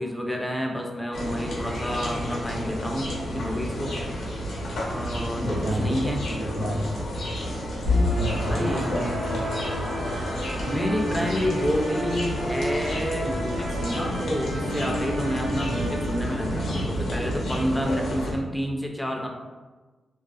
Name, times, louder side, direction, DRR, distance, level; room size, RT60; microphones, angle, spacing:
voice 1, 0.0-4.0 4.9-6.3 8.3-9.0 10.6-19.3, equal, 5° left, 1 dB, 0.3 m, -29 dB
sound 1, 1.1-18.3, equal, 80° left, 0.7 m, -31 dB
voice 2, 5.4-5.9 6.3-6.9 7.6-9.4, equal, 40° left, -6 dB, 0.6 m, -30 dB
sound 2, 7.8-16.8, left 1 dB, 90° right, 0.8 m, -30 dB
2.5 x 2.3 x 2.2 m, 1.3 s
wide cardioid pair, 105°, 0 cm